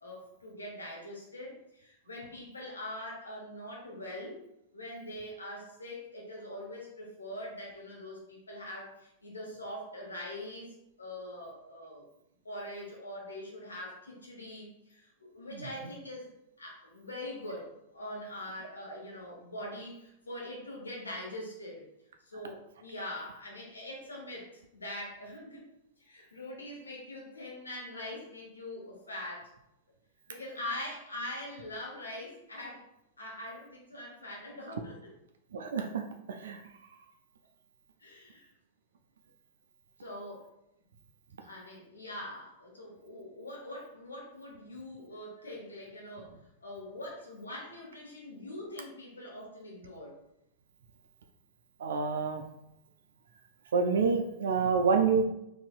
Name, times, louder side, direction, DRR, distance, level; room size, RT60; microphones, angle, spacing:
voice 1, 0.0-4.4 4.7-12.1 12.4-21.8 22.2-25.6 26.0-29.5 30.3-32.8 33.2-35.1 38.0-38.5 40.0-40.5 41.4-50.2, left 1 dB, 80° left, -2 dB, 1.0 m, -43 dB
voice 2, 35.5-36.6 51.8-52.4 53.7-55.2, right 5 dB, 70° right, 4 dB, 0.3 m, -28 dB
3.9 x 2.6 x 2.4 m, 0.82 s
figure-of-eight pair, 95°, 0 cm